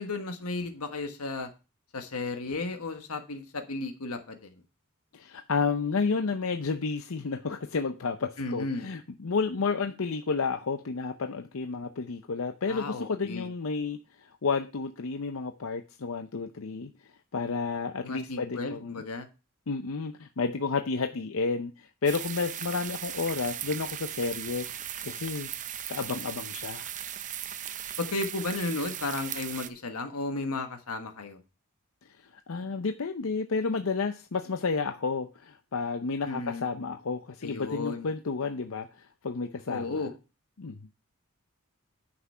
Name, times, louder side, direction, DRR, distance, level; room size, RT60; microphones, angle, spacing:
voice 1, 0.0-1.5 1.9-4.5 8.4-8.9 12.7-13.5 18.0-19.3 28.0-31.4 36.2-36.6 37.4-38.1 39.7-40.1, left 3 dB, 85° left, 1.4 m, -34 dB
voice 2, 5.1-16.9 17.3-19.0 19.7-25.5 25.9-26.9 32.3-40.1 40.6-40.8, left 4 dB, 65° left, 0.6 m, -31 dB
sound 1, 22.1-29.7, right 10 dB, 35° right, 0.7 m, -38 dB
9.8 x 6.0 x 5.5 m
head